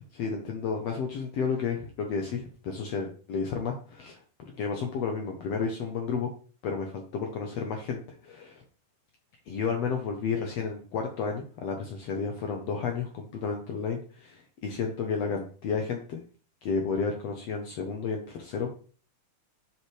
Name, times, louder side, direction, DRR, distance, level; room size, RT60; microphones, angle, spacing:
voice 1, 0.1-4.2 4.6-6.3 6.6-8.6 9.5-16.2 16.6-18.7, left 5 dB, 70° left, 3 dB, 1.6 m, -32 dB
7.5 x 6.4 x 3.3 m, 0.41 s
omnidirectional pair, 3.8 m